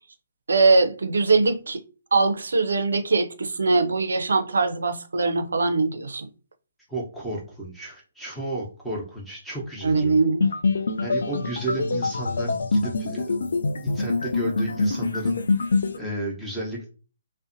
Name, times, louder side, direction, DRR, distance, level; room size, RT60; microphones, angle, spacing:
voice 1, 0.5-1.8 2.1-6.3 9.8-10.5, right 3 dB, 75° right, 0.5 m, -21 dB
voice 2, 6.9-10.2 11.0-13.4 13.8-15.7 16.0-16.9, right 2 dB, ahead, 0.8 m, -33 dB
sound 1, 10.4-16.0, left 3 dB, 70° left, 0.3 m, -25 dB
2.5 x 2.1 x 2.6 m
figure-of-eight pair, 135°, 0 cm